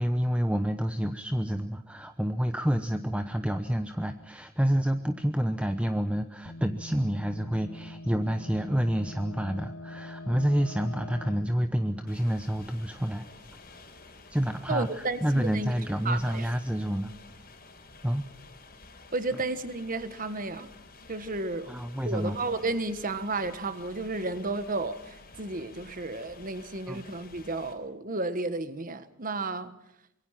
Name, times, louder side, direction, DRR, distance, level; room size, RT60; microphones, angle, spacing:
voice 1, 0.0-13.2 14.3-17.1 18.0-18.3 21.7-22.4 22.8-22.9 26.9-27.1, equal, 5° right, 0.8 m, -28 dB
sound 1, 6.5-13.1, left 1 dB, 75° left, 1.9 m, -44 dB
sound 2, 12.1-27.7, left 3 dB, 45° left, 4.2 m, -51 dB
voice 2, 14.7-15.7 16.0-16.5 19.1-20.7 21.1-21.7 22.0-29.7, right 2 dB, 40° right, 1.5 m, -32 dB
25.5 x 22.5 x 5.9 m
head